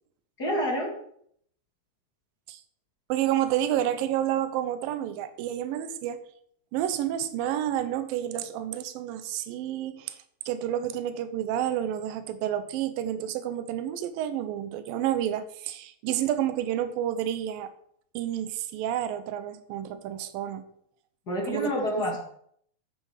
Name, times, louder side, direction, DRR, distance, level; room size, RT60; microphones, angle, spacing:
voice 1, 0.4-0.9 21.3-22.2, equal, 35° left, -1 dB, 2.1 m, -28 dB
voice 2, 3.1-6.2 6.7-10.2 10.5-17.7 18.1-20.6 21.4-22.2, right 11 dB, 80° right, 11 dB, 2.5 m, -30 dB
9.3 x 8.7 x 5.7 m, 0.67 s
omnidirectional pair, 4.1 m